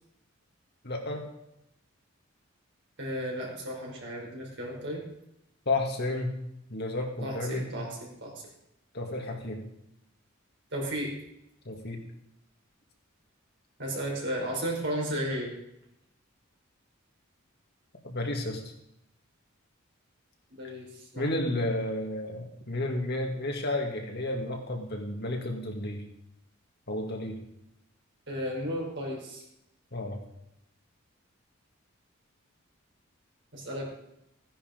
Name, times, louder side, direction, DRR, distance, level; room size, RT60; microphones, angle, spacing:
voice 1, 0.8-1.3 5.7-6.3 6.7-7.7 8.9-9.6 11.7-12.0 18.0-18.6 21.2-26.0 26.9-27.4 29.9-30.2, left 2 dB, 50° left, 2 dB, 2.3 m, -32 dB
voice 2, 3.0-5.0 7.2-8.3 10.7-11.1 13.8-15.5 20.5-21.2 28.3-29.4 33.5-33.9, equal, 55° right, -2 dB, 5.1 m, -34 dB
15.5 x 10.5 x 5.2 m, 0.80 s
head